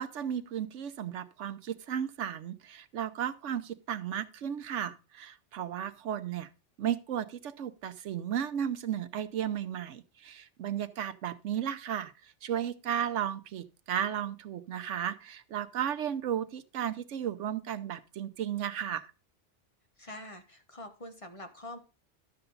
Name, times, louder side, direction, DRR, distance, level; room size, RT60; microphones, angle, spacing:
voice 1, 0.0-6.5 6.8-19.1, right 9 dB, 85° right, 13 dB, 1.1 m, -34 dB
voice 2, 20.0-21.8, left 1 dB, 30° left, 5 dB, 1.2 m, -45 dB
12.0 x 6.9 x 3.9 m, 0.30 s
omnidirectional pair, 1.2 m